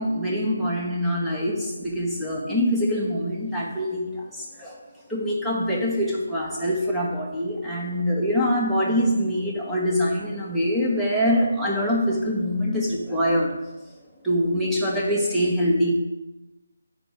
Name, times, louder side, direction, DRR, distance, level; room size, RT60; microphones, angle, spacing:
voice 1, 0.0-4.8 5.1-13.5 14.2-15.9, equal, ahead, -7 dB, 1.3 m, -24 dB
6.7 x 5.4 x 6.5 m, 1.0 s
figure-of-eight pair, 150°, 0 cm